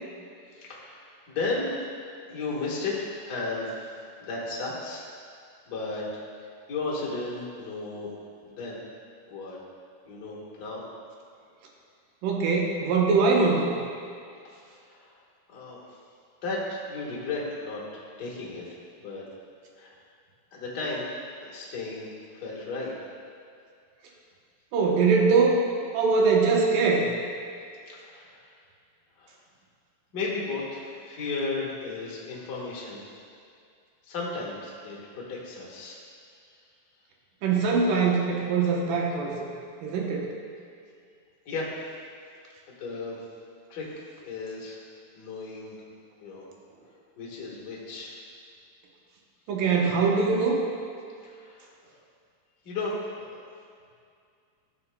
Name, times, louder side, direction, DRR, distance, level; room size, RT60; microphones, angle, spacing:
voice 1, 0.5-1.8 2.3-3.9 4.2-5.1 5.7-6.1 6.7-8.1 8.4-8.8 9.3-9.6 10.0-10.8 14.5-15.2 15.5-15.8 16.4-18.6 19.0-19.2 19.8-19.9 20.5-21.1 21.4-22.1 22.3-22.9 27.9-28.4 29.2-29.3 30.1-33.0 34.0-36.0 41.4-41.7 42.7-43.2 43.7-43.9 44.2-44.8 45.1-45.7 46.2-46.4 47.2-48.1 51.2-51.7 52.6-53.4, left 3 dB, 55° left, -5 dB, 1.2 m, -34 dB
voice 2, 12.2-13.7 24.7-25.6 25.9-27.1 37.4-39.5 39.8-40.3 49.5-50.6, right 4 dB, 75° right, -1 dB, 2.5 m, -22 dB
13.5 x 7.5 x 2.2 m, 2.3 s
omnidirectional pair, 4.0 m